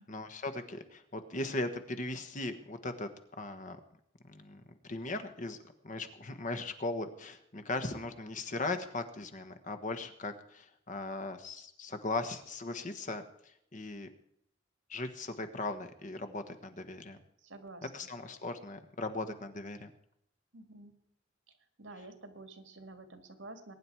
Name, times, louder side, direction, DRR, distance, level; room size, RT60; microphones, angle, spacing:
voice 1, 0.0-3.1 3.4-3.8 4.3-5.6 5.8-13.2 13.7-14.1 14.9-17.2 17.9-19.9, left 2 dB, 45° left, 8 dB, 1.4 m, -38 dB
voice 2, 17.4-17.9 20.5-20.9 21.8-23.7, right 2 dB, 80° right, 8 dB, 2.0 m, -49 dB
21.5 x 10.0 x 4.7 m, 0.74 s
head